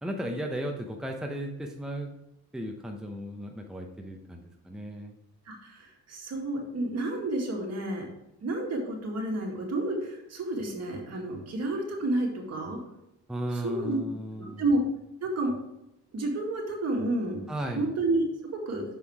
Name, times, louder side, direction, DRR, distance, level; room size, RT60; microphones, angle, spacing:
voice 1, 0.0-2.1 2.5-5.1 13.3-14.6 17.5-17.9, equal, ahead, 2 dB, 0.8 m, -35 dB
voice 2, 5.5-8.1 8.4-12.8 13.5-14.0 14.4-14.8 15.2-15.5 16.1-17.4 17.8-18.8, right 2 dB, 55° right, 1 dB, 2.1 m, -30 dB
6.2 x 5.5 x 4.8 m, 0.86 s
cardioid pair, 90°, 30 cm